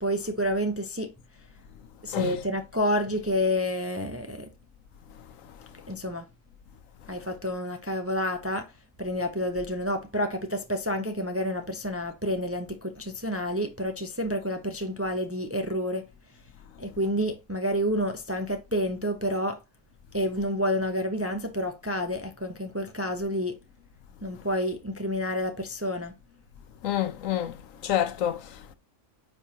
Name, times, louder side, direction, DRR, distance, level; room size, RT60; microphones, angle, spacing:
voice 1, 0.0-1.1 2.0-4.5 5.9-6.2 7.1-8.7 9.0-16.1 16.8-19.6 20.1-23.6 24.2-26.1, equal, 15° right, 0.5 m, -29 dB
voice 2, 26.8-28.7, left 11 dB, 80° left, 1.1 m, -28 dB
9.0 x 5.4 x 2.9 m
omnidirectional pair, 1.4 m